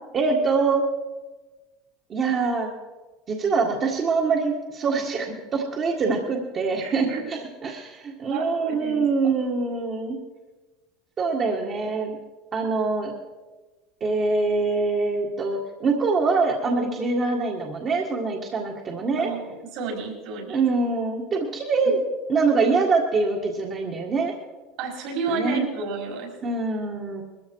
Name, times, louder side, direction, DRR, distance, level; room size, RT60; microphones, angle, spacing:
voice 1, 0.1-0.8 2.1-2.7 3.3-10.2 11.2-12.2 12.5-13.1 14.0-19.3 20.5-22.0 22.3-24.3 25.3-25.7 26.4-27.2, right 4 dB, 35° right, 0 dB, 1.8 m, -24 dB
voice 2, 6.8-7.2 8.3-9.1 19.2-20.6 21.8-21.9 24.8-26.3, right 4 dB, 65° right, 2 dB, 4.9 m, -31 dB
20.5 x 14.0 x 4.8 m, 1.2 s
supercardioid pair, 110°, 0 cm